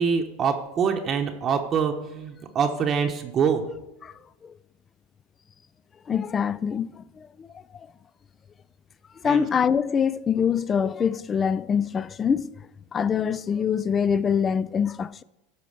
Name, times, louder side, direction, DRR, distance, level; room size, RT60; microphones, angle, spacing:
voice 1, 0.0-3.6 9.2-9.5, right 6 dB, 35° right, 0.9 m, -25 dB
voice 2, 6.1-7.5 7.7-7.9 9.2-12.5 12.9-15.2, left 7 dB, 25° left, 0.3 m, -24 dB
12.5 x 4.2 x 6.6 m
supercardioid pair, 115°, 0 cm